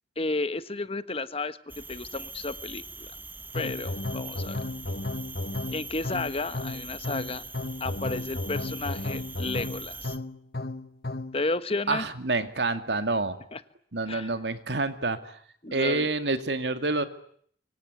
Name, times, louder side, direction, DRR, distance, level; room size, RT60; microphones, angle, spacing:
voice 1, 0.2-3.1 3.5-4.6 5.7-7.4 7.8-10.1 11.3-12.1 13.5-13.6 14.1-14.3 15.6-16.1, left 3 dB, 35° left, 13 dB, 1.3 m, -32 dB
sound 1, 1.7-10.2, right 3 dB, 10° right, 1.3 m, -42 dB
sound 2, 3.5-11.4, left 2 dB, 60° left, 1.4 m, -34 dB
voice 2, 11.9-13.4 13.9-15.4 15.7-17.1, right 3 dB, 75° right, 10 dB, 2.3 m, -28 dB
25.5 x 24.0 x 9.6 m, 0.62 s
head